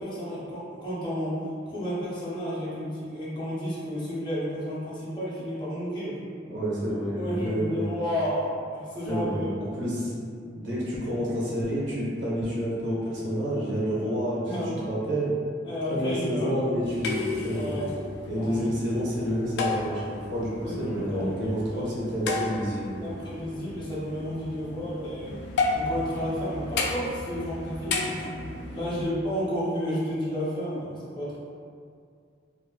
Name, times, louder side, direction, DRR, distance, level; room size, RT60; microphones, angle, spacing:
voice 1, 0.0-6.2 7.2-9.5 14.4-14.9 15.6-16.5 17.5-17.9 18.3-18.6 20.6-21.8 23.0-25.4 25.7-28.4 28.7-31.4, equal, 25° left, -9 dB, 0.6 m, -32 dB
voice 2, 6.5-7.8 9.1-15.3 15.9-17.7 18.3-23.1, equal, 70° right, -6 dB, 0.7 m, -29 dB
sound 1, 16.8-29.0, left 3 dB, 65° left, 0.3 m, -33 dB
2.5 x 2.4 x 2.2 m, 2.3 s
head